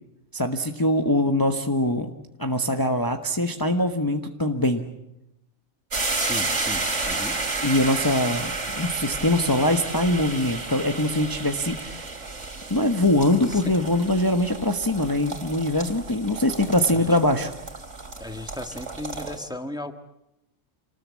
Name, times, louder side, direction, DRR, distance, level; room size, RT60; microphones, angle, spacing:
voice 1, 0.3-2.1 2.4-4.8 7.6-12.1 12.7-17.5, left 1 dB, 15° left, 5 dB, 1.2 m, -23 dB
sound 1, 5.9-19.4, right 3 dB, 65° right, 3.2 m, -32 dB
voice 2, 6.1-7.4 13.5-13.7 16.9-17.2 18.2-19.9, left 1 dB, 5° right, 7 dB, 1.4 m, -35 dB
27.5 x 20.0 x 8.5 m, 0.86 s
omnidirectional pair, 1.4 m